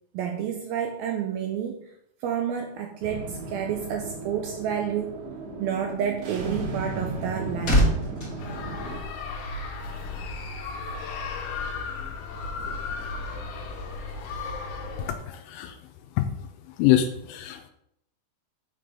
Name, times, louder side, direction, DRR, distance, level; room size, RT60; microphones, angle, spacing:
voice 1, 0.1-1.9 2.2-5.2 5.6-7.8, right 8 dB, 80° right, 2 dB, 2.2 m, -30 dB
sound 1, 3.0-9.0, right 3 dB, 65° right, 2.0 m, -35 dB
sound 2, 7.1-9.6 9.9-10.1, equal, 30° left, 1.7 m, -27 dB
sound 3, 8.4-15.1, left 4 dB, 70° left, 2.8 m, -35 dB
voice 2, 15.0-15.8 16.2-16.3 16.8-17.7, left 12 dB, 85° left, 6 dB, 2.8 m, -25 dB
6.9 x 3.9 x 6.3 m, 0.74 s
omnidirectional pair, 4.9 m